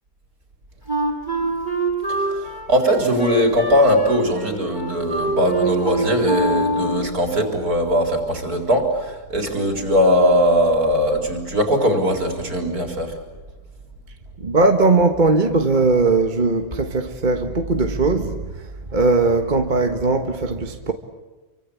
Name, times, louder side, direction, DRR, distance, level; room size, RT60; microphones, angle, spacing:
Wind instrument woodwind instrument, 0.9-7.2, right 1 dB, 25° left, 5.5 m, -24 dB
voice 1, 2.7-8.9 9.3-13.1, equal, 55° right, 4.5 m, -19 dB
voice 2, 14.4-18.4 18.9-20.9, right 3 dB, 30° right, 1.5 m, -19 dB
28.5 x 24.5 x 8.5 m
omnidirectional pair, 1.9 m